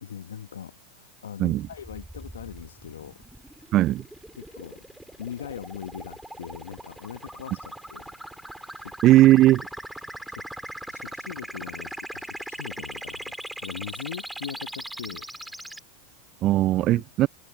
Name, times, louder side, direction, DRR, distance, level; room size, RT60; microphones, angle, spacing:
voice 1, 0.0-3.2 3.6-3.7 4.3-4.8 5.2-8.1 8.8-9.2 10.3-10.5 10.9-15.3 16.8-17.3, left 9 dB, 70° left, 1.5 m, -41 dB
sound 1, 1.6-15.8, right 1 dB, 5° right, 3.6 m, -40 dB
voice 2, 3.7-4.0 9.0-9.6 16.4-17.3, right 15 dB, 40° right, 0.5 m, -18 dB
figure-of-eight pair, 90°, 0 cm